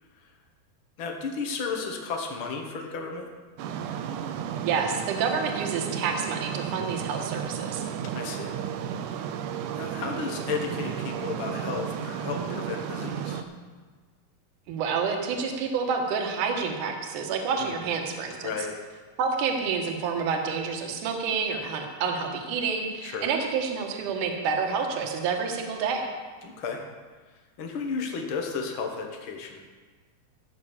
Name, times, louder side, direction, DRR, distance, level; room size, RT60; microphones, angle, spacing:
voice 1, 1.0-3.3 8.1-8.5 9.7-13.5 17.6-17.7 18.4-18.8 23.0-23.3 26.4-26.8 27.6-29.6, left 5 dB, 70° left, 2 dB, 1.2 m, -33 dB
sound 1, 3.6-13.4, right 8 dB, 90° right, 1.7 m, -33 dB
voice 2, 4.6-7.8 14.7-18.5 19.2-26.1, right 5 dB, 65° right, 3 dB, 2.6 m, -28 dB
16.0 x 6.2 x 7.2 m, 1.4 s
omnidirectional pair, 4.4 m